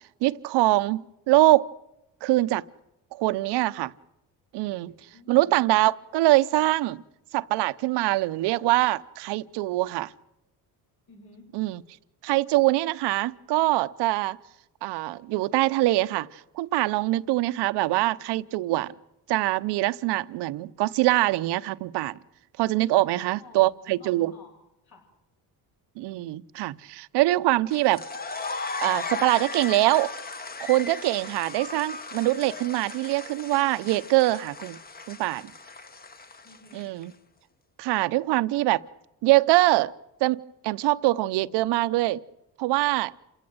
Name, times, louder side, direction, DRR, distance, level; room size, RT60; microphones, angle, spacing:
voice 1, 0.2-1.7 2.2-2.6 3.2-3.9 4.5-4.9 5.3-7.0 7.3-10.1 11.5-11.8 12.2-14.4 14.8-18.9 19.3-22.2 22.6-24.3 26.0-28.0 28.8-30.1 30.6-34.8 35.1-35.4 36.7-37.1 37.8-38.8 39.2-39.9 40.2-42.2 42.6-43.1, right 18 dB, 90° right, 0.9 m, -23 dB
voice 2, 4.9-5.6 11.1-11.5 22.9-24.5 24.9-25.1 36.4-36.9, left 2 dB, 65° left, 7.1 m, -52 dB
sound 1, 27.7-37.0, left 4 dB, 25° left, 1.1 m, -37 dB
28.0 x 17.5 x 7.9 m
cardioid pair, 120°, 39 cm